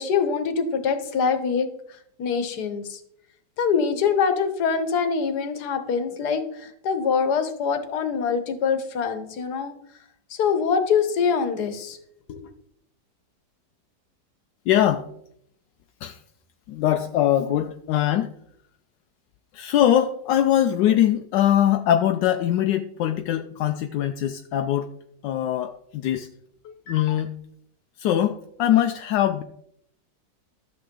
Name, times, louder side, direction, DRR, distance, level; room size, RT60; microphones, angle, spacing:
voice 1, 0.0-1.7 2.2-3.0 3.6-9.7 10.3-12.0 12.3-12.4, left 6 dB, 65° left, 8 dB, 1.6 m, -24 dB
voice 2, 14.7-15.1 16.0-16.2 16.7-18.3 19.5-24.9 25.2-26.3 26.6-27.4 28.0-29.4, left 11 dB, 85° left, 6 dB, 1.2 m, -22 dB
13.0 x 6.8 x 3.7 m, 0.73 s
omnidirectional pair, 1.9 m